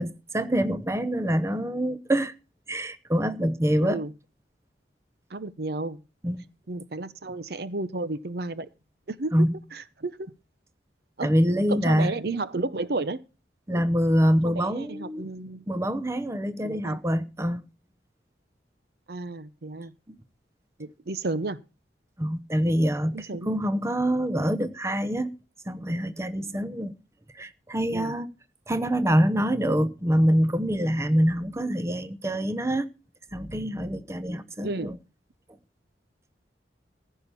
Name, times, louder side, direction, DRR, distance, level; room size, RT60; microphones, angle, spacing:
voice 1, 0.0-2.3 2.7-4.0 6.2-6.4 9.3-9.5 11.2-12.1 13.7-15.2 15.7-17.6 22.2-23.2 23.5-25.3 25.7-26.9 27.3-28.3 28.7-32.9 33.3-35.0, equal, 15° right, 0.7 m, -25 dB
voice 2, 3.8-4.1 5.3-6.0 6.7-8.7 9.1-9.3 9.7-10.3 11.2-11.3 11.7-13.2 13.7-13.8 14.4-15.6 16.6-17.0 19.1-19.9 20.8-21.6 23.1-23.5 27.9-28.1 34.6-34.9, right 2 dB, 60° right, 0.7 m, -32 dB
15.0 x 5.6 x 7.0 m
head